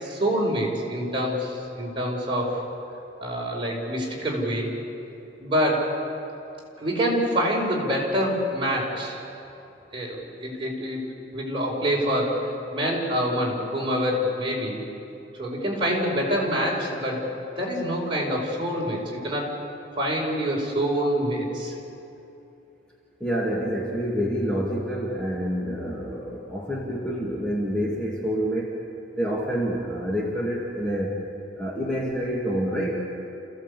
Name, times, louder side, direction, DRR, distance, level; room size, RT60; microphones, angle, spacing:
voice 1, 0.0-2.6 3.2-4.7 5.4-5.9 6.8-9.2 9.9-11.0 11.3-14.8 15.4-17.3 17.6-19.5 20.0-21.7, equal, 25° right, -3 dB, 4.9 m, -26 dB
voice 2, 23.2-28.8 29.2-31.2 31.6-33.2, equal, 5° left, -4 dB, 2.2 m, -27 dB
29.0 x 15.5 x 8.4 m, 2.9 s
head